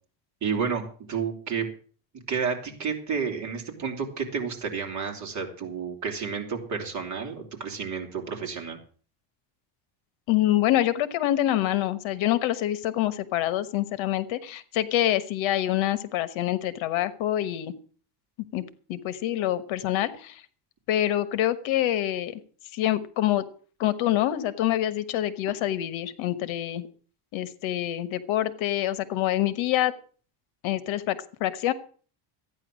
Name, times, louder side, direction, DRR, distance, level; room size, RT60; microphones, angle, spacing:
voice 1, 0.4-1.6 2.3-8.8, right 6 dB, 35° right, 2 dB, 3.2 m, -31 dB
voice 2, 10.3-17.7 18.5-18.6 18.9-20.4 20.9-22.4 22.7-23.4 23.8-26.8 27.3-29.9 30.6-31.7, left 13 dB, 70° left, 14 dB, 1.3 m, -26 dB
14.0 x 9.6 x 6.2 m, 0.42 s
cardioid pair, 160°, 49 cm